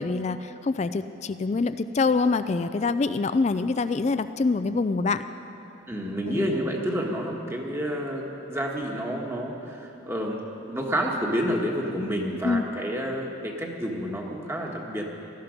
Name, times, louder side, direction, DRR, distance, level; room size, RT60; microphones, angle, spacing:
voice 1, 0.0-5.2 6.3-6.5 12.4-12.6, left 4 dB, 35° left, 11 dB, 0.3 m, -25 dB
voice 2, 5.9-10.4 10.7-15.1, equal, 10° right, 0 dB, 1.4 m, -29 dB
17.5 x 13.5 x 5.1 m, 2.9 s
head